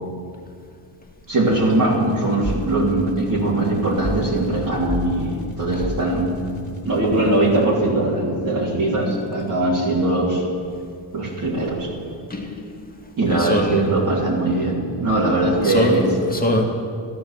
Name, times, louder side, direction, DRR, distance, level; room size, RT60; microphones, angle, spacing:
voice 1, 1.3-6.3 6.8-10.4 11.1-11.9 13.2-16.1, right 2 dB, 45° right, -6 dB, 3.5 m, -21 dB
sound 1, 1.4-8.0, left 2 dB, 35° left, 2.1 m, -36 dB
sound 2, 2.4-2.8 4.0-4.4 4.9-5.1 5.8-6.1, equal, ahead, 4.2 m, -28 dB
voice 2, 12.3-12.8 13.3-13.9 15.6-16.0 16.3-16.6, left 1 dB, 20° left, 2 dB, 2.3 m, -22 dB
13.5 x 13.0 x 7.3 m, 2.3 s
cardioid pair, 100°, 47 cm